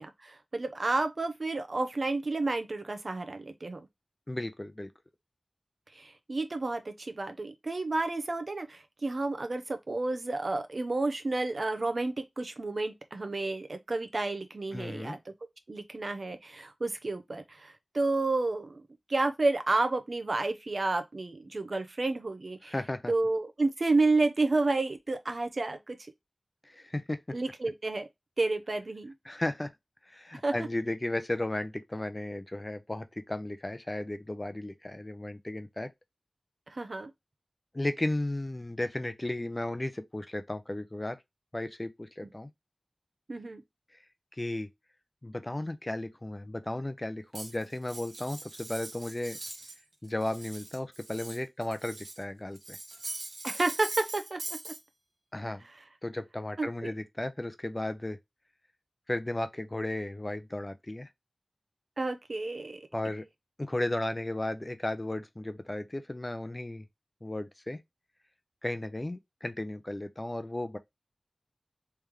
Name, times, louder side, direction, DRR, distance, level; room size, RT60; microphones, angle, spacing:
voice 1, 0.0-3.8 6.0-15.2 15.7-18.8 19.1-22.7 23.1-26.0 27.3-28.1 28.4-29.1 30.4-30.5 36.7-37.1 43.3-43.6 53.4-54.7 56.6-56.9 62.0-62.8, right 2 dB, 60° right, 0.7 m, -30 dB
voice 2, 4.3-4.9 14.7-15.2 22.6-23.1 26.6-27.2 29.2-29.7 30.1-35.9 37.7-41.2 41.5-42.5 44.3-44.7 45.2-49.4 50.0-52.8 55.3-55.7 56.0-58.2 59.1-61.1 62.9-63.2 63.6-66.9 67.2-67.8 68.6-70.8, left 1 dB, 30° left, 0.6 m, -34 dB
Cutlery silverware, 47.3-49.8 50.1-52.2 52.6-54.8, right 2 dB, 80° right, 1.2 m, -42 dB
3.4 x 3.0 x 3.6 m
wide cardioid pair, 70°, 0 cm